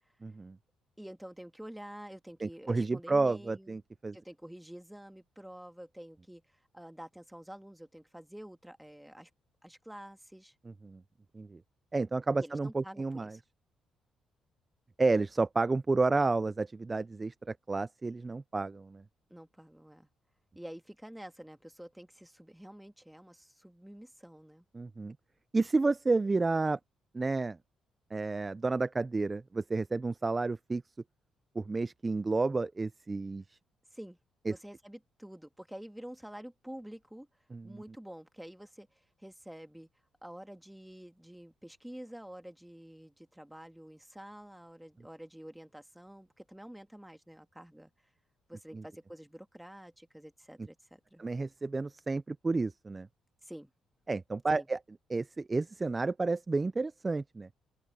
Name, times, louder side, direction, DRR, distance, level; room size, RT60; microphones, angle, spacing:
voice 1, 0.2-0.6 2.4-4.2 10.8-11.0 11.3-11.6 11.9-13.4 15.0-19.0 24.7-25.2 25.5-26.8 27.1-27.6 28.1-30.8 31.6-33.6 34.5-34.6 37.5-37.8 48.7-48.8 51.2-53.1 54.1-54.8 55.1-57.5, right 3 dB, 25° right, 0.3 m, -31 dB
voice 2, 1.0-3.8 4.1-9.3 9.6-10.6 12.4-13.4 19.3-20.1 20.5-24.6 33.9-34.2 34.5-37.3 37.6-39.9 40.2-47.9 48.5-51.2 53.4-53.7 54.6-54.7, equal, 5° right, 2.1 m, -48 dB
open air
cardioid pair, 90°, 0 cm